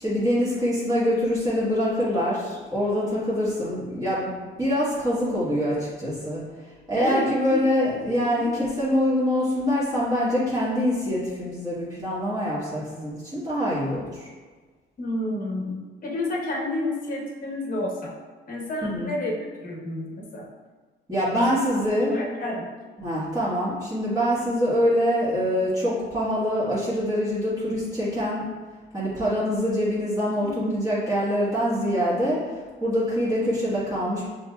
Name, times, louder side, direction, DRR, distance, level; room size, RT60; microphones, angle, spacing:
voice 1, 0.0-4.3 4.6-6.4 6.9-14.3 18.8-19.1 21.1-22.2 23.0-28.4 28.9-32.4 32.8-34.3, equal, 15° right, -9 dB, 1.5 m, -24 dB
voice 2, 7.0-7.6 8.3-8.5 15.0-18.1 18.5-19.3 19.6-20.5 21.3-21.6 21.9-22.7 30.4-30.8, left 2 dB, 45° left, -1 dB, 1.0 m, -30 dB
6.2 x 3.0 x 2.3 m, 1.4 s
cardioid pair, 90°, 20 cm